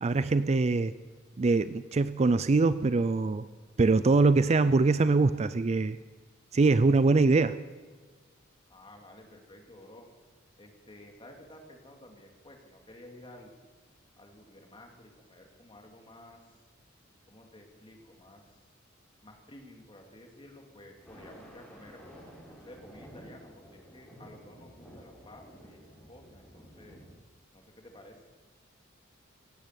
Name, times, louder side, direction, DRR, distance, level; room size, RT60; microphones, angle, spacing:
voice 1, 0.0-0.9 1.4-3.5 3.8-6.0 6.5-7.6, right 3 dB, 35° right, 14 dB, 0.4 m, -23 dB
voice 2, 8.7-10.1 10.6-13.5 14.2-16.6 17.3-18.6 19.2-22.0 22.5-25.8 26.1-27.0 27.5-28.2, left 1 dB, 25° left, 2 dB, 2.5 m, -52 dB
Thunder, 21.0-27.1, equal, 5° left, 5.1 m, -52 dB
17.0 x 10.5 x 8.2 m, 1.4 s
head